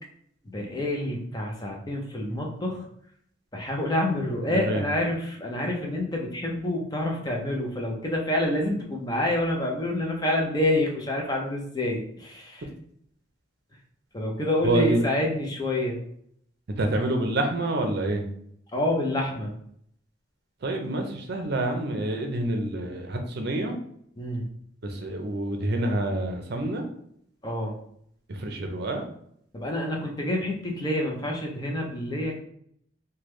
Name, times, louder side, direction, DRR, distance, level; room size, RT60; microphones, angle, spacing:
voice 1, 0.4-2.9 3.5-12.6 14.1-16.0 18.7-19.5 24.2-24.4 27.4-27.8 29.5-32.4, left 1 dB, 20° left, 0 dB, 0.5 m, -27 dB
voice 2, 4.5-4.9 14.6-15.1 16.7-18.3 20.6-23.8 24.8-26.9 28.3-29.0, right 1 dB, 55° right, 4 dB, 0.6 m, -27 dB
3.3 x 2.2 x 3.1 m, 0.68 s
head